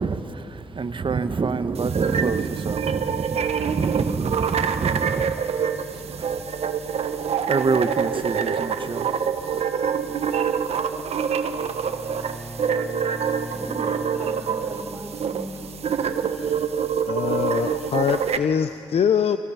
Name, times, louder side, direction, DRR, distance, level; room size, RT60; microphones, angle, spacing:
voice 1, 0.0-6.5 6.8-9.7 10.0-10.4, right 4 dB, 50° right, 1.2 m, -28 dB
sound 1, 1.7-18.4, right 7 dB, 70° right, 1.2 m, -26 dB
Bowed string instrument, 11.5-15.4, right 1 dB, 10° left, 4.9 m, -40 dB
voice 2, 13.5-15.8, right 1 dB, 30° right, 4.5 m, -37 dB
voice 3, 16.2-16.6 17.1-19.4, left 7 dB, 65° left, 0.7 m, -24 dB
29.0 x 23.0 x 5.8 m
supercardioid pair, 40°, 11 cm